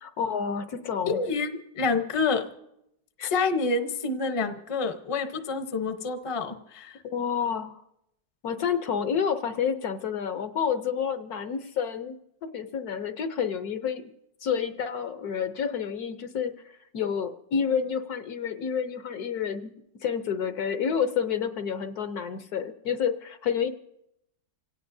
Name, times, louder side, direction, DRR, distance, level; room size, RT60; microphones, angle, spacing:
voice 1, 0.0-1.2 3.2-3.3 7.0-7.8 8.4-12.2 12.4-14.1 14.4-16.5 16.9-19.7 20.0-23.7, left 7 dB, 65° left, 9 dB, 1.2 m, -29 dB
voice 2, 1.1-2.5 3.2-7.0, left 4 dB, 25° left, 7 dB, 0.7 m, -28 dB
27.5 x 17.0 x 2.7 m, 0.81 s
omnidirectional pair, 1.9 m